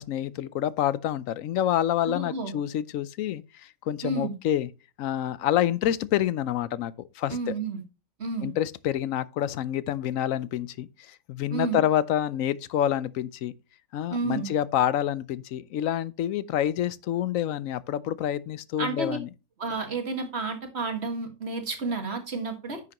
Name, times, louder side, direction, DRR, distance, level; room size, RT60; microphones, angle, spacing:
voice 1, 0.0-3.4 3.9-4.7 5.0-7.5 8.4-13.5 13.9-19.3, left 11 dB, 70° left, 1.0 m, -27 dB
voice 2, 2.1-2.5 4.0-4.3 7.3-7.8 8.2-8.5 11.5-11.8 14.1-14.5 18.8-19.2 19.6-22.8, right 4 dB, 50° right, 1.8 m, -31 dB
10.0 x 6.9 x 2.9 m
omnidirectional pair, 1.5 m